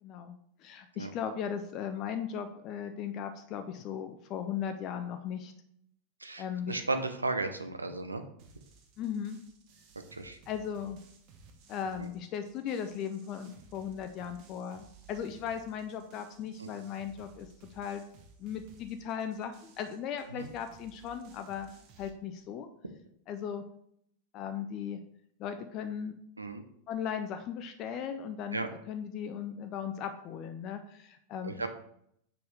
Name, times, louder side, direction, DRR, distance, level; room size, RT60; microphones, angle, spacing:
voice 1, 0.0-5.5 6.4-6.8 9.0-9.4 10.5-11.0 11.7-18.0 18.4-21.7 22.0-22.7 23.3-23.6 24.3-25.0 25.4-26.2 26.9-31.7, left 8 dB, 35° left, 7 dB, 0.5 m, -37 dB
voice 2, 6.2-8.2 10.1-10.4 12.0-12.1 16.6-16.7 20.3-20.5 26.4-26.6 28.5-28.7 31.4-31.7, right 3 dB, 80° right, 7 dB, 0.6 m, -35 dB
sound 1, 8.4-22.1, right 5 dB, 45° right, 1.0 m, -58 dB
6.8 x 5.2 x 3.3 m, 0.70 s
figure-of-eight pair, 90°, 0 cm